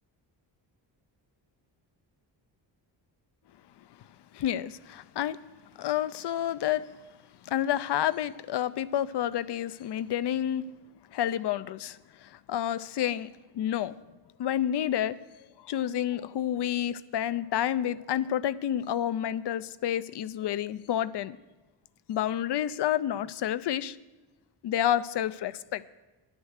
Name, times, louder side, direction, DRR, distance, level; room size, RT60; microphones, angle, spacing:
voice 1, 4.3-5.4 5.8-6.9 7.5-10.7 11.1-13.3 13.5-14.0 14.4-15.2 15.6-21.4 22.1-24.0 24.6-25.8, left 11 dB, 65° left, 0.6 m, -29 dB
10.0 x 10.0 x 6.4 m
wide cardioid pair, 125°, 44 cm